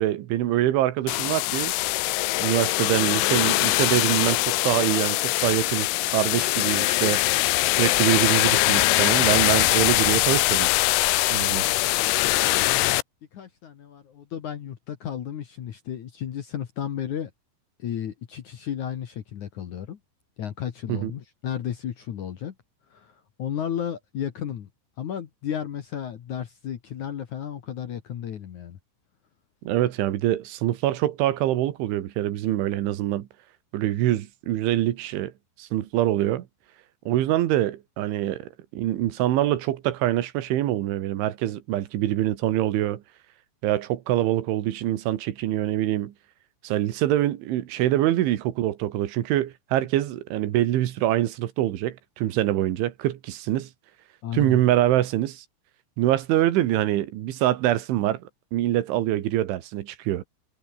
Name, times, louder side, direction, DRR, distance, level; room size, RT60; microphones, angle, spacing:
voice 1, 0.0-1.7 2.4-7.3 7.7-10.7 11.3-11.6 20.9-21.1 29.7-33.3 33.7-35.3 35.6-36.5 37.1-43.0 43.6-46.1 46.6-53.7 54.3-55.5 56.0-58.2 58.5-60.2, right 13 dB, 90° right, 4.0 m, -24 dB
sound 1, 1.1-13.0, left 21 dB, 85° left, 3.2 m, -22 dB
voice 2, 13.3-17.3 17.8-20.0 20.4-22.5 22.9-24.7 25.0-28.8 54.2-54.6, left 9 dB, 60° left, 2.2 m, -33 dB
omnidirectional pair, 5.4 m